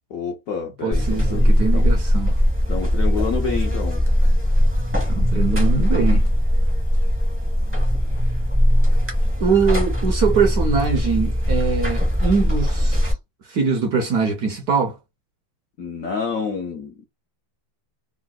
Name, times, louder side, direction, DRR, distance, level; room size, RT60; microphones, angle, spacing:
voice 1, 0.1-1.9 2.7-4.1 15.8-17.0, left 6 dB, 85° left, 0.7 m, -28 dB
voice 2, 0.8-2.4 5.1-6.2 9.4-13.1 13.5-15.0, right 5 dB, 65° right, 0.9 m, -22 dB
Buzz, 0.9-13.1, equal, 15° right, 0.4 m, -19 dB
3.7 x 2.1 x 2.3 m
omnidirectional pair, 2.2 m